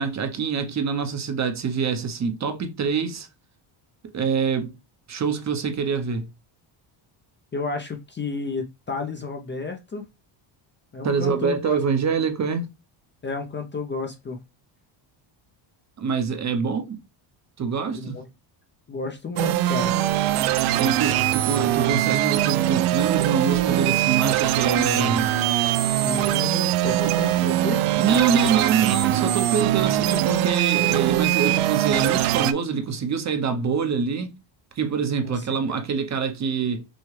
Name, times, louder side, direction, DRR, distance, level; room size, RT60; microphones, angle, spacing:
voice 1, 0.0-3.3 4.0-4.7 5.1-6.3 11.0-12.7 16.0-17.0 17.6-18.2 20.8-25.3 28.0-34.3 34.8-36.8, right 6 dB, 35° right, 0.7 m, -25 dB
voice 2, 7.5-10.0 10.9-11.8 13.2-14.4 17.9-18.2 18.9-19.9 26.0-27.8 35.2-35.6, left 3 dB, 25° left, 0.5 m, -31 dB
sound 1, 19.4-32.5, right 13 dB, 80° right, 0.6 m, -22 dB
6.3 x 2.2 x 3.2 m
cardioid pair, 125°, 50 cm